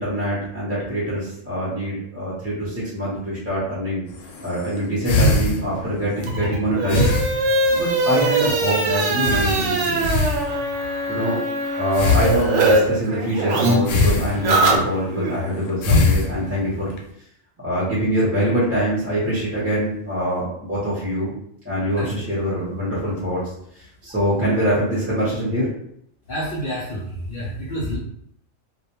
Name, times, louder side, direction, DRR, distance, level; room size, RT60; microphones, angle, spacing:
voice 1, 0.0-4.0 4.4-7.0 7.3-10.1 11.1-11.4 11.8-16.9 17.6-21.4 21.6-23.4 23.7-25.7, equal, 15° right, -8 dB, 0.6 m, -24 dB
sound 1, 4.1-6.4 6.9-8.1 8.3-8.5 8.7-8.8 9.2-10.9 11.9-12.9 13.9-14.8 15.5-17.0, left 3 dB, 80° left, 0.9 m, -22 dB
sound 2, 6.2-12.8 13.1-15.3, right 2 dB, 70° right, 0.9 m, -22 dB
voice 2, 26.3-28.0, equal, 60° left, -5 dB, 0.6 m, -28 dB
2.3 x 2.1 x 2.9 m, 0.73 s
omnidirectional pair, 1.3 m